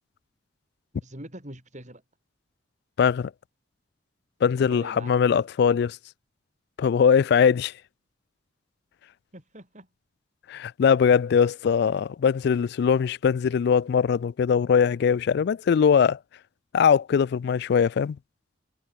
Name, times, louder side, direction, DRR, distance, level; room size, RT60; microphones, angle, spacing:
voice 1, 0.9-2.0 4.6-5.1 9.3-9.9, right 1 dB, 40° right, 6.8 m, -43 dB
voice 2, 3.0-3.3 4.4-6.0 6.8-7.7 10.5-16.2 16.7-18.2, left 7 dB, 60° left, 0.3 m, -21 dB
head